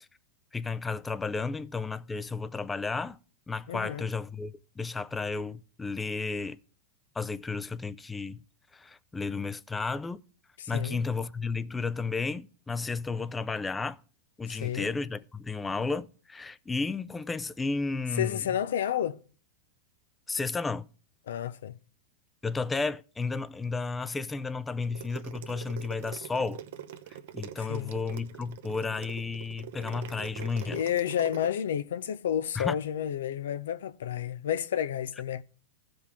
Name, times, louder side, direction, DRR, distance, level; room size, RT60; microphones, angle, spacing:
voice 1, 0.5-3.2 3.5-6.6 7.2-8.4 8.7-10.2 10.7-14.0 14.4-18.5 20.3-20.9 22.4-26.6 27.3-30.8 32.6-32.8, left 4 dB, 15° left, 0.4 m, -33 dB
voice 2, 3.7-4.1 10.6-11.0 14.5-14.9 18.1-19.2 21.3-21.8 27.6-28.0 30.7-35.4, left 10 dB, 85° left, 0.5 m, -31 dB
sound 1, 24.8-31.5, right 11 dB, 70° right, 0.8 m, -43 dB
15.5 x 5.2 x 3.5 m
hypercardioid pair, 120°, 0 cm